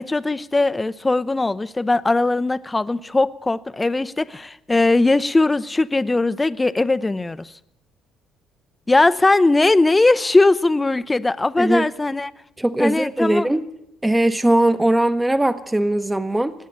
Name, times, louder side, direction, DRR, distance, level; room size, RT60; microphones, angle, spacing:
voice 1, 0.0-7.5 8.9-12.3 12.8-13.5, left 2 dB, 20° left, 15 dB, 0.6 m, -19 dB
voice 2, 12.6-13.6 14.0-16.5, right 1 dB, 10° right, 10 dB, 0.9 m, -19 dB
18.5 x 8.4 x 8.4 m, 0.82 s
hypercardioid pair, 60°, 0 cm